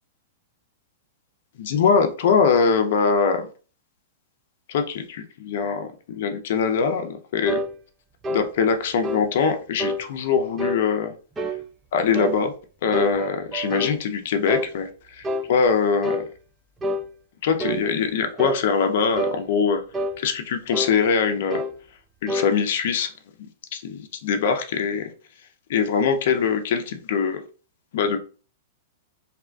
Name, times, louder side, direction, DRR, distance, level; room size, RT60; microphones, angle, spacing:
voice 1, 1.6-3.5 4.7-7.6 8.3-11.1 11.9-12.5 12.8-16.2 17.4-19.8 20.2-21.6 22.2-23.1 23.7-25.1 25.7-27.4 27.9-28.2, left 6 dB, 65° left, 0.5 m, -22 dB
sound 1, 7.5-7.7 8.2-8.5 9.0-9.3 9.8-10.0 10.6-10.8 11.4-11.6 12.1-12.4 12.9-13.9 14.5-14.7 15.2-15.5 16.0-16.3 16.8-17.1 17.6-17.8 18.4-18.6 19.2-19.4 19.9-20.2 20.7-21.0 21.5-21.7 22.3-22.5, equal, 15° right, 0.4 m, -27 dB
2.7 x 2.2 x 2.4 m
hypercardioid pair, 115°, 0 cm